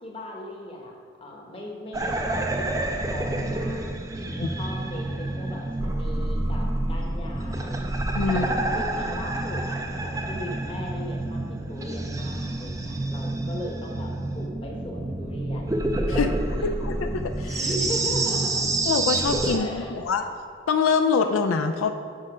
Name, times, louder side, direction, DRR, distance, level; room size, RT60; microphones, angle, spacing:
voice 1, 0.0-4.0 4.4-7.8 8.3-16.2 16.6-16.9 17.6-18.6 19.5-20.0, left 1 dB, 25° left, -1 dB, 0.9 m, -38 dB
sound 1, 1.9-19.6, right 2 dB, 15° right, 0.4 m, -28 dB
voice 2, 8.1-8.5 16.1-16.3 16.6-17.1 17.4-17.6 18.9-20.2 20.7-21.9, left 5 dB, 85° left, 7 dB, 0.4 m, -24 dB
6.4 x 5.3 x 4.9 m, 2.2 s
head